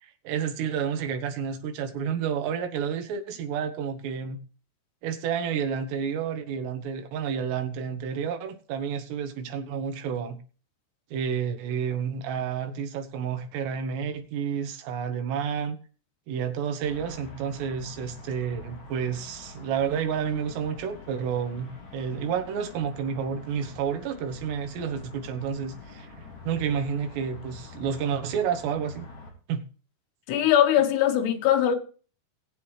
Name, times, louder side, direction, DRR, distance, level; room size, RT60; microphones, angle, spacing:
voice 1, 0.0-4.4 5.0-10.4 11.1-15.8 16.3-26.1 26.5-29.1 29.5-29.6, right 7 dB, 80° right, 3.5 m, -30 dB
sound 1, 16.8-29.3, left 2 dB, 40° left, 4.7 m, -45 dB
voice 2, 30.3-31.8, left 10 dB, 75° left, 3.5 m, -21 dB
20.0 x 8.2 x 3.2 m
omnidirectional pair, 5.0 m